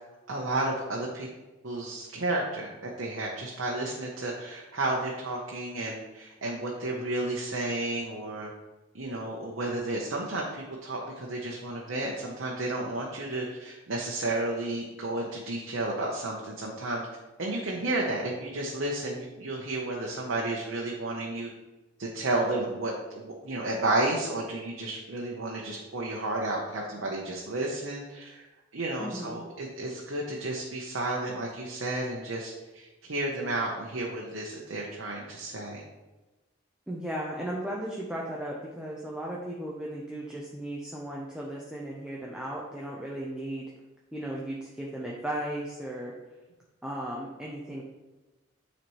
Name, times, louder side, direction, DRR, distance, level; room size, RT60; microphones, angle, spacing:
voice 1, 0.3-1.3 1.6-8.5 8.9-17.0 17.4-21.5 22.0-28.5 28.7-35.8, right 2 dB, 75° right, -2 dB, 0.8 m, -32 dB
voice 2, 29.0-29.5 36.9-43.6 44.1-46.1 46.8-47.8, right 1 dB, 5° right, -4 dB, 0.6 m, -36 dB
9.3 x 4.2 x 3.1 m, 1.1 s
head